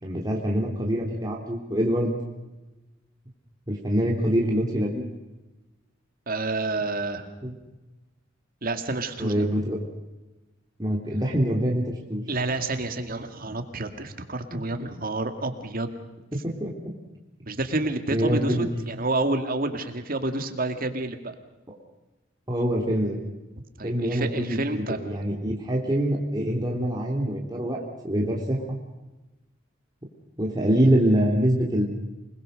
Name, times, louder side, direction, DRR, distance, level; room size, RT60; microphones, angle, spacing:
voice 1, 0.0-2.1 3.7-5.1 7.4-7.5 9.2-9.8 10.8-12.2 14.5-14.6 16.4-16.7 18.1-18.7 22.5-23.2 23.8-28.8 30.4-31.8, equal, 20° right, -2 dB, 3.1 m, -25 dB
voice 2, 6.3-7.3 8.6-9.5 12.3-15.9 17.5-21.3 23.8-25.3, right 2 dB, 50° right, 7 dB, 2.3 m, -29 dB
27.5 x 20.5 x 6.5 m, 1.1 s
head